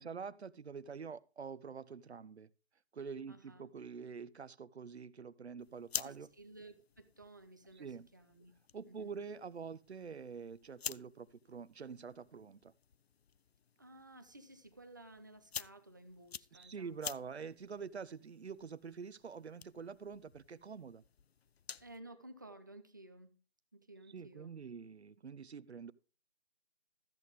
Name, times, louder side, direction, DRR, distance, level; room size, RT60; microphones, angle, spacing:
voice 1, 0.0-2.5 2.9-6.3 7.7-8.1 8.7-12.7 16.5-21.0 24.1-25.9, right 6 dB, 75° right, 0.7 m, -46 dB
voice 2, 3.3-3.7 5.9-8.5 8.9-9.1 13.8-17.2 21.8-23.4 23.7-24.5, right 1 dB, 20° right, 0.5 m, -55 dB
sound 1, 5.6-22.0, left 7 dB, 70° left, 0.5 m, -50 dB
13.5 x 7.8 x 3.6 m
figure-of-eight pair, 150°, 33 cm